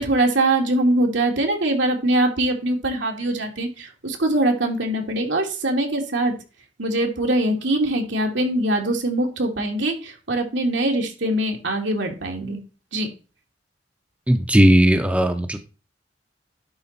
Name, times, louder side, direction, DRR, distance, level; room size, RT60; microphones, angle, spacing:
voice 1, 0.0-6.3 6.8-12.6 12.9-13.1, right 1 dB, 80° right, 2 dB, 2.3 m, -22 dB
voice 2, 14.3-15.6, equal, 5° right, 6 dB, 0.8 m, -17 dB
11.0 x 4.4 x 4.2 m, 0.33 s
head